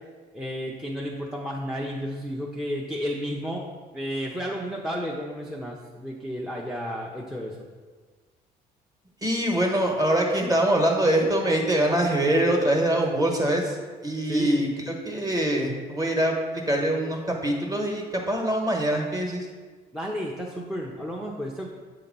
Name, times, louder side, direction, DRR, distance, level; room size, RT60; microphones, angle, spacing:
voice 1, 0.3-3.6 3.9-7.6 14.3-14.6 19.9-21.7, equal, 5° right, -2 dB, 0.6 m, -32 dB
voice 2, 9.2-13.8 14.0-16.3 16.7-19.5, right 1 dB, 20° right, 1 dB, 1.1 m, -24 dB
7.7 x 2.9 x 5.2 m, 1.4 s
cardioid pair, 110°, 17 cm